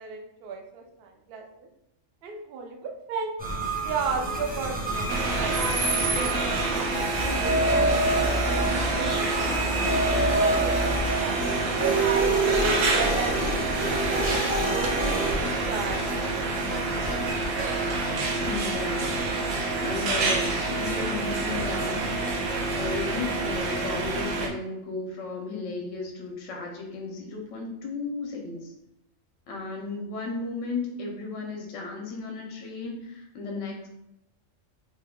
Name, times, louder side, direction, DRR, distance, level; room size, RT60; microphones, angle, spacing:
voice 1, 0.0-1.7 2.2-3.3 3.8-9.2 10.1-11.4 11.8-16.7, right 5 dB, 60° right, 3 dB, 0.6 m, -35 dB
sound 1, 3.4-16.3 16.5-17.7, right 2 dB, 10° right, 0.5 m, -28 dB
sound 2, 5.1-24.5, right 3 dB, 85° right, 1.0 m, -27 dB
voice 2, 18.5-22.2 22.7-28.7 29.5-33.9, left 3 dB, 75° left, 0 dB, 0.9 m, -34 dB
2.8 x 2.1 x 3.5 m, 0.83 s
omnidirectional pair, 1.3 m